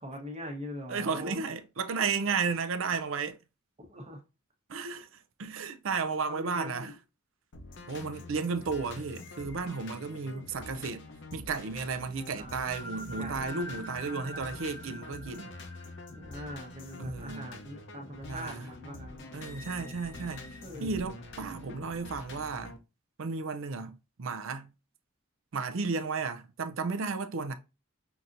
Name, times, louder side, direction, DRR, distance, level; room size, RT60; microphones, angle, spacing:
voice 1, 0.0-1.4 3.9-4.2 4.7-4.9 6.3-7.0 12.3-12.8 13.2-13.5 14.3-14.5 16.1-19.3 20.6-21.2, equal, 30° right, 1.0 m, -42 dB
voice 2, 0.9-3.4 4.7-6.9 7.9-11.0 11.3-15.5 17.0-17.5 18.3-18.7 19.3-22.7 23.2-24.7 25.5-27.5, right 4 dB, 65° right, 0.5 m, -33 dB
sound 1, 7.5-22.8, left 2 dB, 55° left, 0.7 m, -46 dB
sound 2, 9.2-11.1 12.7-17.5 18.0-18.1 19.4-20.7, left 1 dB, 15° left, 0.4 m, -46 dB
5.7 x 2.7 x 2.5 m
head